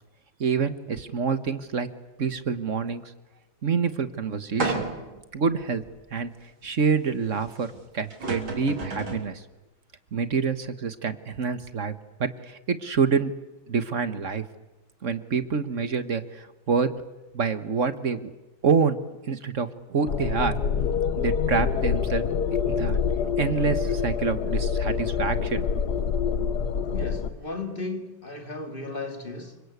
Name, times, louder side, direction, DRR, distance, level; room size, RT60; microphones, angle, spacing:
voice 1, 0.4-1.9 2.2-3.1 3.6-4.8 5.3-5.8 6.1-6.3 6.6-9.4 10.1-11.9 12.2-13.3 13.7-14.4 15.0-16.9 17.3-18.3 18.6-19.0 19.2-20.6 21.2-22.2 22.7-23.0 23.4-26.1, right 5 dB, 40° right, 1.5 m, -27 dB
sound 1, 4.6-5.2 5.8-5.9 7.7-7.8 8.1-9.3, right 3 dB, 85° right, 4.7 m, -31 dB
sound 2, 20.1-27.3, left 6 dB, 55° left, 1.6 m, -26 dB
voice 2, 26.9-29.6, left 2 dB, 25° left, 2.4 m, -35 dB
28.0 x 25.0 x 8.2 m
omnidirectional pair, 2.2 m